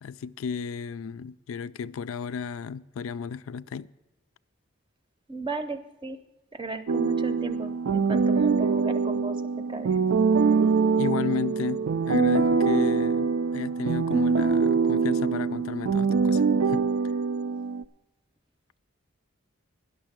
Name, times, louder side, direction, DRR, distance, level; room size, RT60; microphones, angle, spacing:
voice 1, 0.0-3.9 11.0-16.9, left 6 dB, 80° left, 0.3 m, -33 dB
voice 2, 5.3-6.2 6.5-10.0, right 3 dB, 25° right, 0.6 m, -36 dB
sound 1, 6.9-17.8, right 5 dB, 75° right, 0.4 m, -24 dB
10.5 x 6.6 x 8.9 m
head